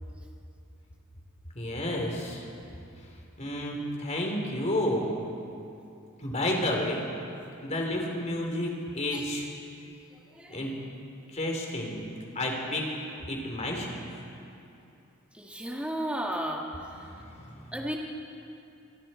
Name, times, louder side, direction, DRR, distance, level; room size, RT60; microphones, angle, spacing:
voice 1, 1.6-2.4 3.4-5.2 6.2-7.1 7.6-9.5 10.5-10.8 11.3-12.9 13.3-14.1 17.0-17.7, left 1 dB, 35° left, 0 dB, 3.8 m, -31 dB
voice 2, 10.1-10.6 15.3-17.1 17.7-18.0, right 1 dB, 5° right, -1 dB, 2.0 m, -34 dB
25.0 x 25.0 x 4.5 m, 2.7 s
head